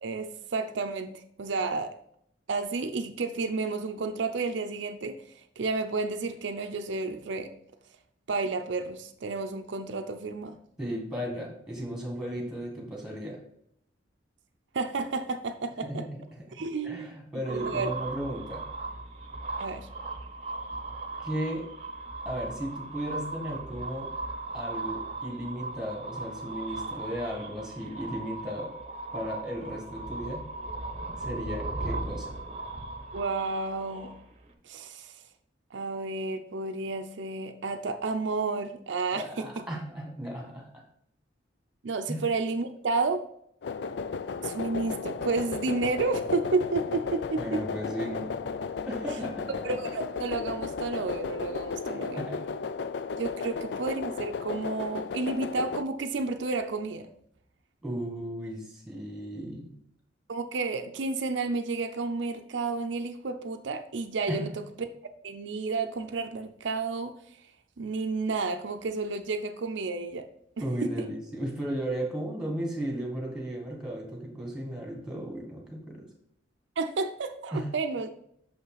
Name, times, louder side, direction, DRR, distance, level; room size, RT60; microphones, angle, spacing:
voice 1, 0.0-1.1 1.4-1.9 2.5-5.2 5.6-7.5 8.3-10.6 14.7-16.1 16.5-17.2 17.5-17.9 19.6-19.9 33.1-34.2 34.6-35.1 35.7-39.6 41.8-43.2 44.4-47.6 49.6-52.2 53.2-57.1 60.3-64.9 65.2-67.1 67.8-70.3 70.6-70.9 76.8-78.1, right 3 dB, 75° right, 7 dB, 0.5 m, -31 dB
voice 2, 10.8-13.4 15.8-18.6 21.2-21.7 22.3-24.1 24.5-28.7 29.1-30.5 31.2-32.3 39.1-40.8 42.1-42.2 47.4-48.4 48.9-49.5 52.1-52.5 57.8-59.7 64.3-64.6 70.6-76.1 77.5-77.7, right 1 dB, 5° right, -1 dB, 1.9 m, -35 dB
sound 1, 17.5-34.5, right 2 dB, 35° right, 0.8 m, -38 dB
sound 2, 43.6-55.8, left 5 dB, 60° left, 0.4 m, -34 dB
6.5 x 5.5 x 4.0 m, 0.72 s
head